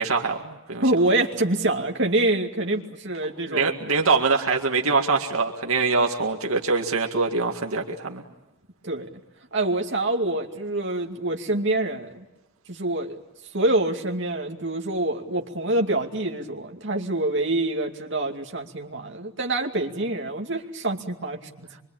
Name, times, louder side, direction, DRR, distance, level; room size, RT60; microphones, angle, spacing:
voice 1, 0.0-0.8 3.5-8.2, right 4 dB, 80° right, 1 dB, 2.1 m, -24 dB
voice 2, 0.8-3.8 8.8-9.1 9.5-12.2 12.7-13.2 13.5-21.7, right 2 dB, 55° right, 2 dB, 2.5 m, -26 dB
25.0 x 24.5 x 8.9 m, 0.99 s
head